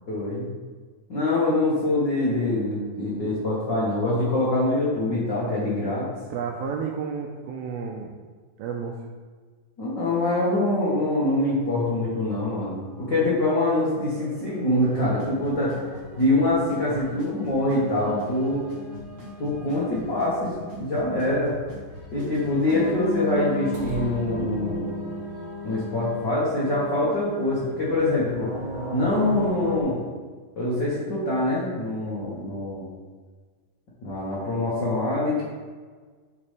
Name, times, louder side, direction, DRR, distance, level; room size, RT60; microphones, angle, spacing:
voice 1, 0.1-0.5 1.1-6.1 9.8-15.7 16.2-18.6 19.4-21.5 22.1-24.9 25.6-28.5 28.9-30.0 30.5-32.9 34.0-35.4, left 2 dB, 75° left, -8 dB, 1.0 m, -24 dB
voice 2, 6.3-8.2 8.6-9.1, right 6 dB, 85° right, 1 dB, 2.1 m, -31 dB
sound 1, 13.3-29.8, left 1 dB, 50° left, 2.6 m, -37 dB
Drum kit / Snare drum / Bass drum, 14.9-22.9, right 4 dB, 45° right, 2.8 m, -43 dB
sound 2, 23.7-25.3, right 3 dB, 65° right, 3.4 m, -36 dB
9.7 x 6.0 x 3.4 m, 1.5 s
omnidirectional pair, 4.8 m